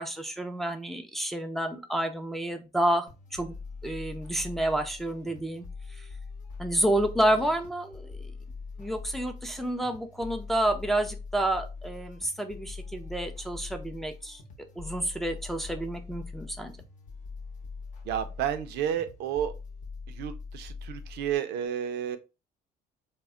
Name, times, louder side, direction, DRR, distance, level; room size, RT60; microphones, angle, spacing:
voice 1, 0.0-3.5 3.8-5.6 6.0-6.1 6.6-8.3 8.8-14.4 14.8-16.7, right 1 dB, ahead, 0.4 m, -29 dB
sound 1, 3.1-21.4, left 4 dB, 50° left, 0.8 m, -43 dB
voice 2, 18.0-19.5 20.1-22.2, right 9 dB, 80° right, 0.4 m, -31 dB
2.2 x 2.0 x 3.5 m
cardioid pair, 110°, 17 cm